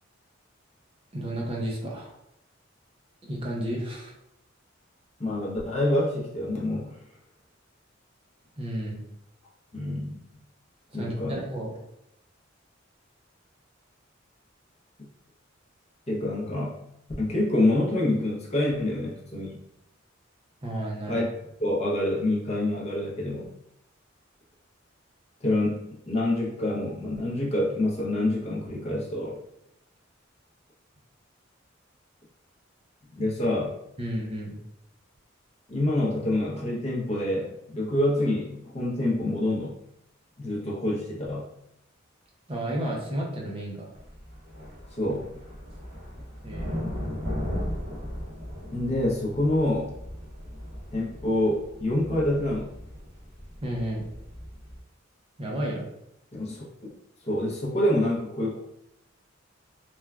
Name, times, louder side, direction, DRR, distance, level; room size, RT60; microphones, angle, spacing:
voice 1, 1.1-2.1 3.2-4.1 8.6-9.0 10.9-11.7 20.6-21.2 34.0-34.6 42.5-43.9 46.4-46.8 53.6-54.0 55.4-55.9, right 1 dB, 30° right, -2 dB, 0.5 m, -32 dB
voice 2, 5.2-7.0 9.7-10.2 10.9-11.4 15.0-15.1 16.1-16.8 17.2-19.6 21.1-21.2 21.6-23.5 25.4-29.4 33.2-33.8 35.7-39.8 40.4-41.5 45.0-45.3 48.7-49.9 50.9-52.7 56.4-56.9 57.2-58.6, left 1 dB, 35° left, -4 dB, 0.7 m, -27 dB
sound 1, 43.9-54.8, equal, 55° right, 1.2 m, -37 dB
3.1 x 2.3 x 2.3 m, 0.79 s
head